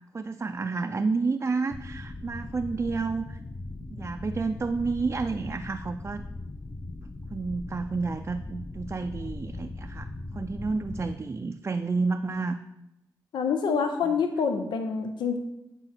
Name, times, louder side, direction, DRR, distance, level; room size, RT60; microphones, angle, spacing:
voice 1, 0.1-3.4 3.9-6.2 7.3-12.6 14.0-14.2, right 4 dB, 35° right, 6 dB, 0.4 m, -30 dB
sound 1, 1.7-11.2, left 2 dB, 20° left, 0.8 m, -39 dB
voice 2, 13.3-15.4, left 6 dB, 85° left, 6 dB, 0.6 m, -26 dB
8.8 x 4.5 x 6.0 m, 0.91 s
cardioid pair, 70°, 8 cm